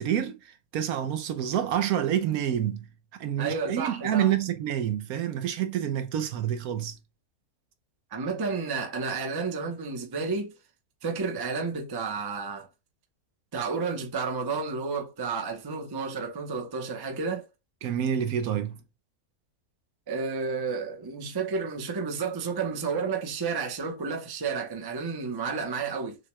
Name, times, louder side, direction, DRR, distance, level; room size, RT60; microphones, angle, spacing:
voice 1, 0.0-2.9 3.2-7.0 17.8-18.8, right 10 dB, 75° right, 1.1 m, -28 dB
voice 2, 3.4-4.3 8.1-10.5 11.0-12.7 13.5-17.4 20.1-26.2, right 4 dB, 25° right, 0.5 m, -31 dB
6.4 x 2.2 x 3.0 m
omnidirectional pair, 1.6 m